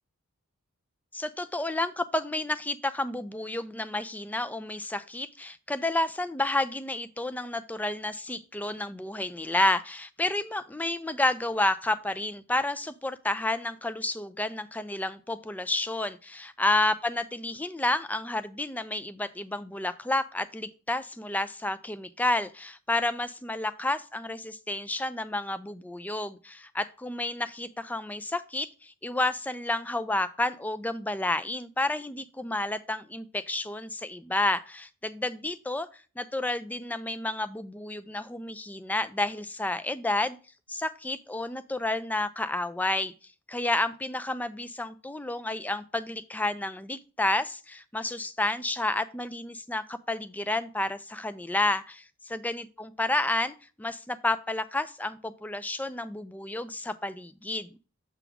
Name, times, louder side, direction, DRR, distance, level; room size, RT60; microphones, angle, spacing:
voice 1, 1.1-35.9 36.2-40.4 40.7-43.1 43.5-52.0 52.3-57.7, left 2 dB, 5° left, 13 dB, 0.3 m, -30 dB
6.9 x 3.6 x 6.0 m, 0.36 s
head